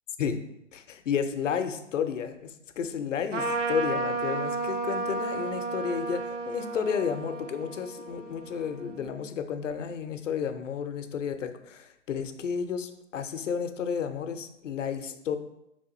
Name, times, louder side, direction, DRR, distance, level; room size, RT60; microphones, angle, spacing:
voice 1, 0.7-15.4, left 7 dB, 80° left, 9 dB, 0.6 m, -32 dB
Trumpet, 3.3-9.1, right 3 dB, 75° right, 0.9 m, -33 dB
3.9 x 3.4 x 3.9 m, 0.84 s
hypercardioid pair, 125°, 37 cm